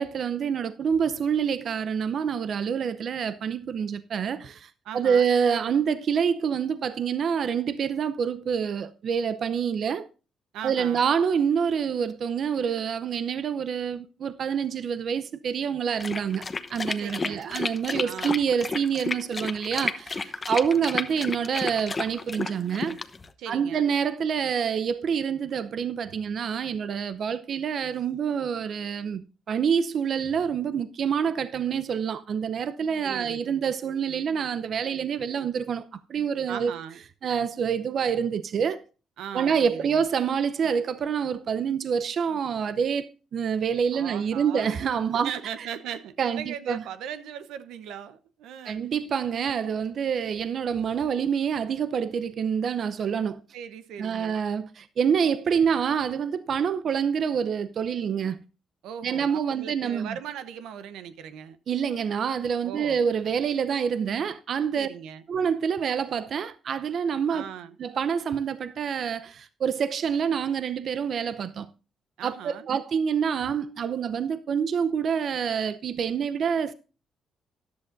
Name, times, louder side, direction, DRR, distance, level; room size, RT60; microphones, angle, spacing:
voice 1, 0.0-10.1 10.6-16.4 16.7-23.0 23.5-35.8 36.1-36.7 37.2-38.8 39.3-43.1 43.3-45.3 46.2-46.8 48.7-53.4 54.0-58.4 59.0-60.2 61.7-64.9 65.3-67.5 67.8-71.7 72.2-76.7, right 7 dB, 55° right, 0.7 m, -27 dB
voice 2, 4.8-5.3 10.5-11.1 17.0-17.6 18.0-18.4 23.4-23.9 33.0-33.6 36.5-37.0 39.2-40.1 43.9-44.8 45.1-48.9 53.5-54.4 58.8-61.6 62.6-63.1 64.7-65.2 67.3-67.8 72.2-72.7, right 9 dB, 85° right, 0.9 m, -39 dB
sound 1, 16.0-23.3, left 3 dB, 30° left, 0.9 m, -31 dB
13.5 x 10.5 x 2.6 m
cardioid pair, 90°, 0 cm